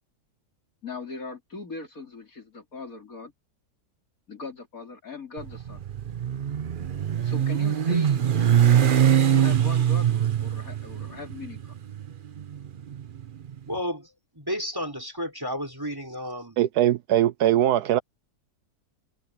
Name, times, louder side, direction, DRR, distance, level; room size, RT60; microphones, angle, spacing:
voice 1, 0.8-3.3 4.3-5.8 7.2-8.5 9.3-11.7, left 3 dB, 55° left, 4.3 m, -40 dB
Motorcycle, 5.4-13.6, right 9 dB, 45° right, 0.7 m, -23 dB
voice 2, 13.7-14.1 14.4-16.6, equal, 15° right, 3.5 m, -32 dB
voice 3, 16.6-18.0, right 12 dB, 80° right, 1.2 m, -21 dB
omnidirectional pair, 1.7 m